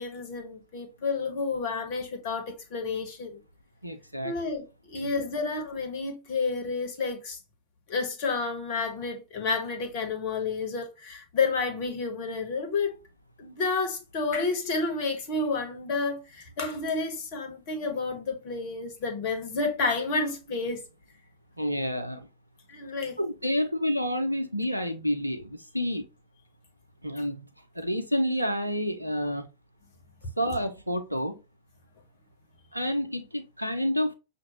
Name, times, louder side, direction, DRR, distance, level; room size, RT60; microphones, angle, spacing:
voice 1, 0.0-3.4 4.2-7.4 7.9-13.0 13.4-20.8 22.7-23.2, left 4 dB, 50° left, 1.3 m, -30 dB
voice 2, 3.8-4.3 5.0-5.1 21.6-22.3 23.2-26.0 27.0-27.5 27.7-29.4 30.4-31.4 32.7-34.1, equal, 90° right, 0.6 m, -29 dB
6.1 x 2.6 x 3.0 m
figure-of-eight pair, 90°, 0 cm